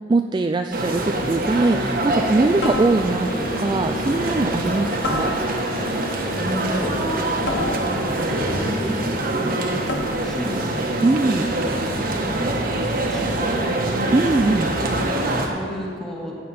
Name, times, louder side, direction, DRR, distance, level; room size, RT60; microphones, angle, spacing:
voice 1, 0.1-3.3 3.6-5.4 11.0-11.5 14.1-14.7, right 2 dB, 25° right, 7 dB, 0.3 m, -21 dB
sound 1, 0.7-15.5, right 1 dB, 50° right, 1.3 m, -24 dB
sound 2, 2.6-3.4 5.0-5.9 7.5-8.4 9.9-10.5, left 2 dB, 75° left, 1.1 m, -30 dB
Wind instrument woodwind instrument, 3.0-7.4, left 3 dB, 55° left, 1.6 m, -35 dB
voice 2, 5.9-7.0 7.5-9.7 10.2-10.8 11.9-12.2 12.7-14.0 15.4-16.3, equal, 5° left, -3 dB, 1.8 m, -32 dB
14.0 x 9.5 x 4.3 m, 2.6 s
head